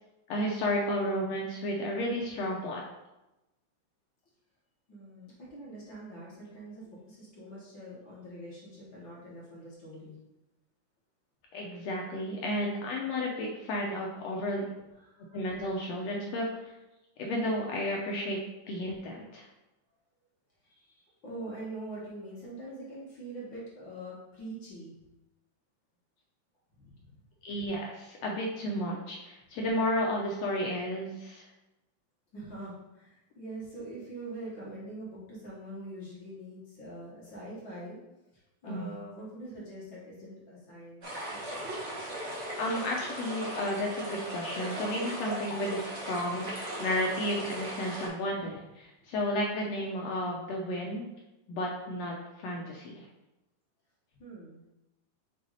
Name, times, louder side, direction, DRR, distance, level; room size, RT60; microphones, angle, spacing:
voice 1, 0.3-2.8 11.5-14.7 15.3-16.7 17.2-18.4 18.6-19.5 27.4-31.5 38.7-38.9 42.6-51.1 51.5-53.1, left 1 dB, 75° left, -1 dB, 1.5 m, -32 dB
voice 2, 4.9-10.2 15.0-15.5 20.6-24.9 26.7-27.2 32.3-38.0 38.6-42.4 54.1-54.6, right 1 dB, 50° left, -6 dB, 1.5 m, -44 dB
sound 1, 41.0-48.1, right 1 dB, 55° right, 0.7 m, -38 dB
6.5 x 3.9 x 4.0 m, 0.96 s
omnidirectional pair, 3.7 m